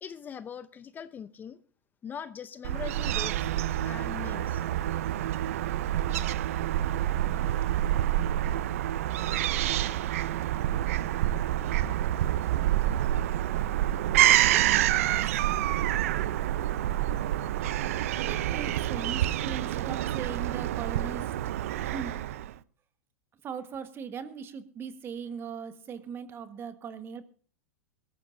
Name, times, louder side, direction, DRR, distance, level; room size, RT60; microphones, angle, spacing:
voice 1, 0.0-1.6 2.0-3.5 3.8-4.6, left 8 dB, 25° left, 0.7 m, -41 dB
Fowl / Gull seagull, 2.6-22.5, right 13 dB, 65° right, 0.7 m, -27 dB
voice 2, 18.2-21.5 21.8-22.3 23.4-27.2, right 6 dB, 30° right, 1.6 m, -39 dB
21.5 x 14.5 x 2.7 m
hypercardioid pair, 105°, 8 cm